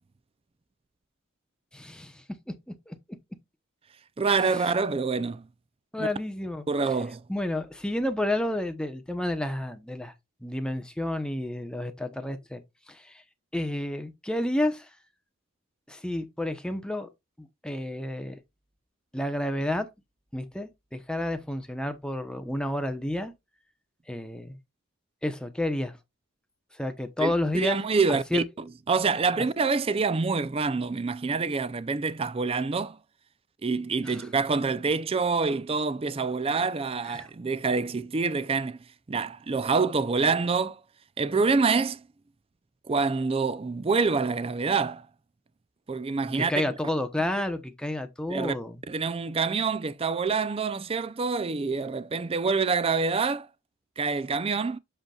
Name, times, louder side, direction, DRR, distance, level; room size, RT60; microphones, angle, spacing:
voice 1, 1.7-2.2 2.9-3.0 5.9-6.6 7.3-10.1 10.4-12.6 12.9-13.2 13.5-14.9 15.9-17.1 17.4-18.4 19.1-19.9 20.3-23.3 24.1-24.6 25.2-26.0 26.8-27.8 28.1-28.4 34.0-34.3 37.1-37.3 46.5-48.8, left 1 dB, 5° left, 0.9 m, -30 dB
voice 2, 4.2-5.5 6.0-6.1 6.7-7.2 27.2-28.4 28.9-33.0 33.6-38.8 39.1-40.8 41.2-42.0 42.9-45.1 45.9-46.5 48.3-48.5 48.9-53.5 54.0-54.8, right 4 dB, 25° right, 0.4 m, -26 dB
7.9 x 5.8 x 2.3 m
head